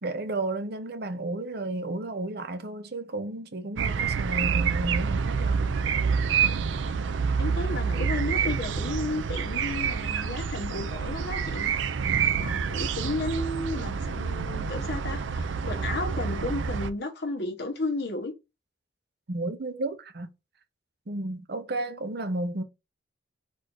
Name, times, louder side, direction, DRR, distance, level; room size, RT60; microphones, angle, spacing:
voice 1, 0.0-5.7 19.3-20.3 21.1-22.6, right 2 dB, 60° right, 0.7 m, -33 dB
sound 1, 3.8-16.9, right 6 dB, 90° right, 0.4 m, -27 dB
voice 2, 7.4-11.7 12.0-18.3, left 2 dB, 65° left, 1.2 m, -33 dB
4.3 x 2.7 x 4.6 m
head